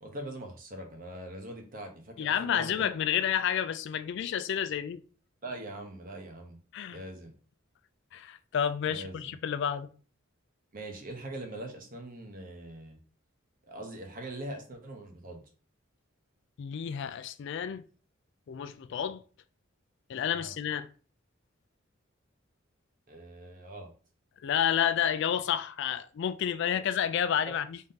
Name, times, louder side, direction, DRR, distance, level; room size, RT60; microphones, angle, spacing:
voice 1, 0.0-2.9 5.4-6.6 6.9-7.3 8.9-9.3 10.7-13.0 13.6-15.4 20.3-20.5 23.1-23.9 26.7-26.9 27.5-27.6, right 1 dB, 45° right, 0.9 m, -42 dB
voice 2, 2.2-5.0 6.7-7.0 8.1-9.9 16.6-17.8 18.5-19.2 20.1-20.9 24.4-27.8, left 9 dB, 60° left, 0.3 m, -30 dB
3.6 x 2.7 x 3.7 m
head